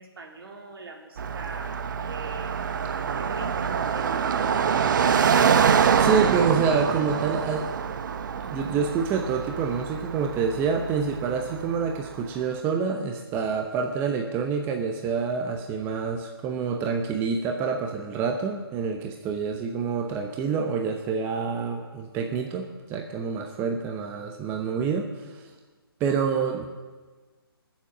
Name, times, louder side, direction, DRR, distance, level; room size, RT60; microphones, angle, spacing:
voice 1, 0.0-2.6 3.1-5.6, right 3 dB, 65° right, 1 dB, 3.2 m, -41 dB
Car passing by, 1.2-12.3, right 7 dB, 50° right, 0.9 m, -25 dB
voice 2, 6.0-7.9 8.3-25.4 26.0-26.7, right 5 dB, 15° right, 3 dB, 0.9 m, -27 dB
21.0 x 7.4 x 7.3 m, 1.3 s
hypercardioid pair, 150°, 13 cm